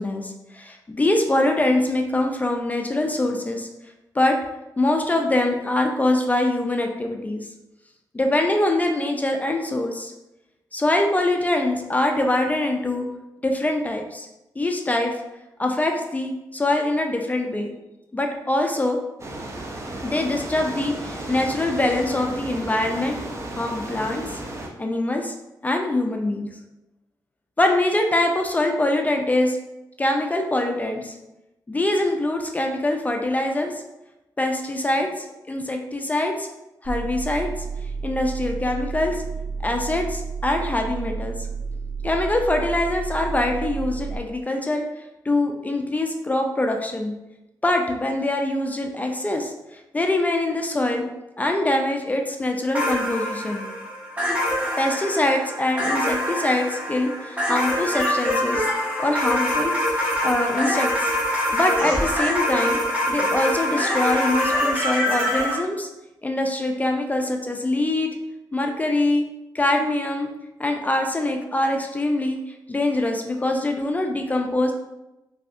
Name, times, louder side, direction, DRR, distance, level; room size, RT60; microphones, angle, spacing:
voice 1, 0.0-3.7 4.1-4.4 4.8-7.5 8.1-10.1 10.7-13.1 13.4-14.3 14.6-15.1 15.6-17.7 18.1-19.0 20.0-23.2 23.5-24.4 24.8-25.3 25.6-26.5 27.6-29.6 30.0-31.1 31.7-33.7 34.4-36.5 36.8-37.5 38.0-39.2 39.6-41.4 42.0-44.8 45.3-47.1 47.6-51.1 51.4-53.7 54.8-58.7 59.0-61.1 61.5-62.8 63.1-65.9 66.2-68.2 68.5-69.2 69.5-70.3 70.6-72.4 72.7-74.7, left 1 dB, 20° left, 3 dB, 0.4 m, -23 dB
sound 1, 19.2-24.7, right 1 dB, 35° right, 0.5 m, -34 dB
sound 2, 36.8-44.2, right 5 dB, 90° right, 1.3 m, -31 dB
sound 3, 52.7-65.5, equal, 20° right, 1.0 m, -24 dB
3.2 x 2.7 x 2.5 m, 0.96 s
cardioid pair, 90°, 8 cm